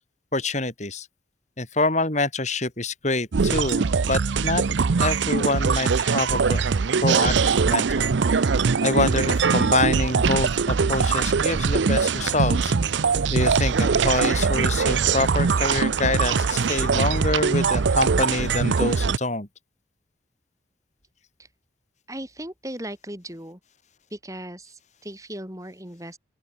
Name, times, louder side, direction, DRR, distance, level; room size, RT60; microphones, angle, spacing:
voice 1, 0.3-1.1 1.6-4.6 5.0-6.6 7.0-8.1 8.8-12.7 13.3-19.5, left 2 dB, 40° left, 4.1 m, -26 dB
sound 1, 3.3-19.2, right 5 dB, 70° right, 0.5 m, -22 dB
voice 2, 22.1-23.6 24.1-26.2, right 1 dB, 15° right, 5.9 m, -37 dB
open air
head